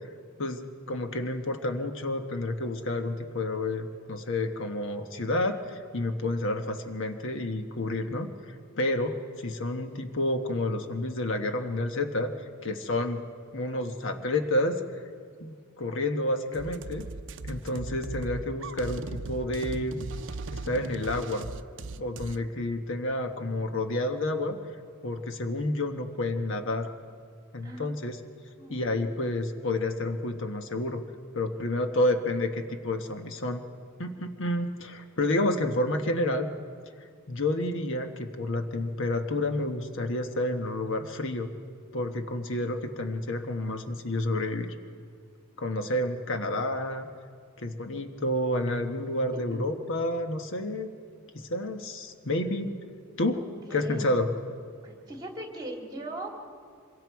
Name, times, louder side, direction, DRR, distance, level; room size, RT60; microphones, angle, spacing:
voice 1, 0.9-8.3 8.8-12.3 12.6-13.2 13.5-14.8 15.4-17.1 17.4-20.0 20.5-21.5 22.0-24.6 25.0-26.9 27.5-28.2 28.7-31.0 31.3-33.6 34.0-36.5 37.3-41.5 41.9-44.7 45.6-47.1 47.6-50.9 51.3-52.7 53.2-53.4 53.7-54.3, left 1 dB, 65° left, 6 dB, 1.2 m, -29 dB
sound 1, 16.5-22.4, right 3 dB, 60° right, 0.6 m, -38 dB
voice 2, 28.6-29.3 49.3-49.4 53.3-54.1 54.8-56.3, right 1 dB, 20° right, 0 dB, 2.9 m, -40 dB
25.5 x 22.5 x 4.7 m, 2.1 s
head